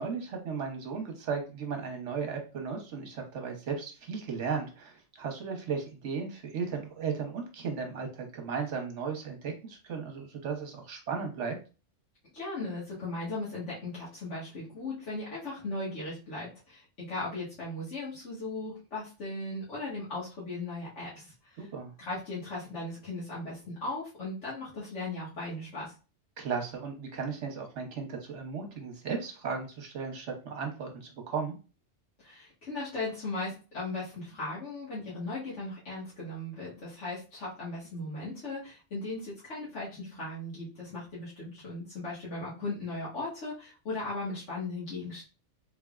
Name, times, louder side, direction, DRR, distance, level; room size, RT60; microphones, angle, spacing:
voice 1, 0.0-11.6 21.6-21.9 26.4-31.6, right 5 dB, 70° right, 3 dB, 1.2 m, -35 dB
voice 2, 12.3-21.7 22.0-25.9 32.2-45.2, left 2 dB, 70° left, -8 dB, 1.7 m, -37 dB
3.7 x 3.4 x 2.4 m, 0.33 s
omnidirectional pair, 1.3 m